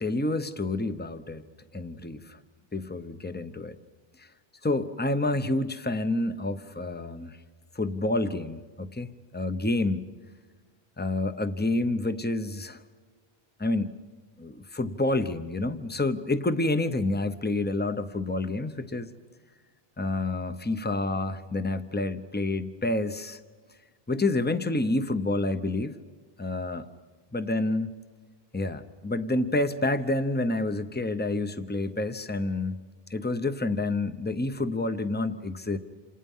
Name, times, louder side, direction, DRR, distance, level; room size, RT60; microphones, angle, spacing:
voice 1, 0.0-2.2 2.7-3.8 4.2-4.3 4.6-7.4 7.7-10.1 11.0-12.8 13.6-14.0 14.4-19.1 20.0-23.4 24.1-26.0 26.4-26.9 27.3-27.9 28.5-32.8 33.1-35.8, left 2 dB, 10° left, 10 dB, 0.8 m, -28 dB
28.5 x 28.0 x 5.6 m, 1.4 s
omnidirectional pair, 1.1 m